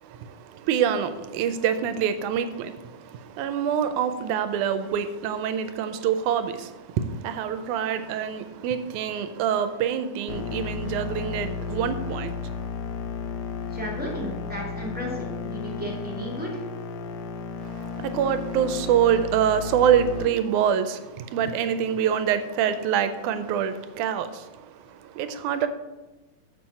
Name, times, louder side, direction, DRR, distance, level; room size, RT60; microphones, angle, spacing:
voice 1, 0.0-12.7 17.6-25.7, right 8 dB, 80° right, 2.1 m, -26 dB
sound 1, 10.3-20.3, left 5 dB, 90° left, 1.1 m, -33 dB
voice 2, 13.7-16.6, left 1 dB, 5° right, 1.8 m, -34 dB
7.1 x 6.3 x 7.0 m
omnidirectional pair, 3.5 m